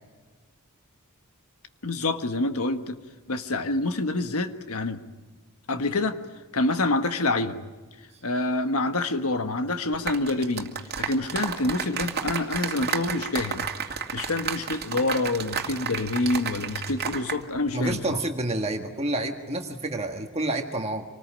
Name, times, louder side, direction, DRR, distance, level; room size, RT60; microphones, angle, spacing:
voice 1, 1.8-3.0 3.3-5.0 5.7-6.2 6.5-7.6 8.2-10.7 11.0-13.7 14.1-18.2, left 2 dB, 70° left, 8 dB, 1.5 m, -27 dB
sound 1, 9.9-17.4 17.7-17.9, right 6 dB, 50° right, 2.4 m, -32 dB
voice 2, 17.7-21.0, right 2 dB, 30° right, 4 dB, 1.7 m, -29 dB
26.5 x 19.5 x 8.9 m, 1.3 s
head